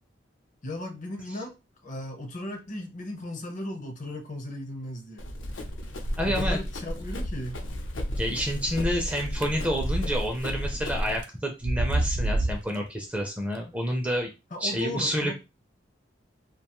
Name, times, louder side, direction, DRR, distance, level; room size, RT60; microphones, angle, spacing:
voice 1, 0.6-1.6 1.8-5.3 6.3-7.6 14.5-15.3, left 1 dB, 40° left, 0.6 m, -36 dB
Run, 5.2-11.2, equal, 80° left, 0.6 m, -33 dB
voice 2, 6.2-6.6 8.2-14.3 14.6-15.3, equal, 5° right, 0.4 m, -29 dB
sound 1, 9.4-10.1 10.5-10.6 11.2-11.3 11.6-12.8, right 1 dB, 70° right, 0.5 m, -26 dB
2.5 x 2.2 x 2.9 m
head